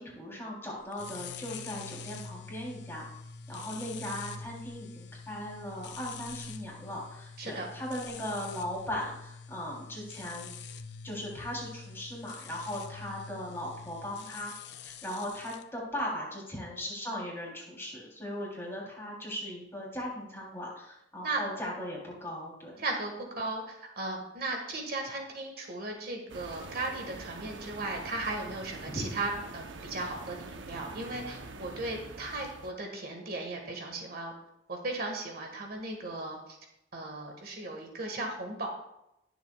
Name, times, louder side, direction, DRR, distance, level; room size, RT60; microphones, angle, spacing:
voice 1, 0.0-3.1 3.5-10.5 11.0-14.5 14.8-22.8 28.9-29.1, left 1 dB, 15° left, -3 dB, 3.5 m, -38 dB
sound 1, 0.9-15.6, left 5 dB, 65° left, 0.7 m, -45 dB
voice 2, 7.4-7.7 21.2-21.4 22.8-34.3 34.7-36.6 36.9-38.7, right 2 dB, 55° right, 2 dB, 1.8 m, -36 dB
sound 2, 26.3-32.7, right 3 dB, 90° right, 0.9 m, -45 dB
20.5 x 7.1 x 2.4 m, 0.84 s
head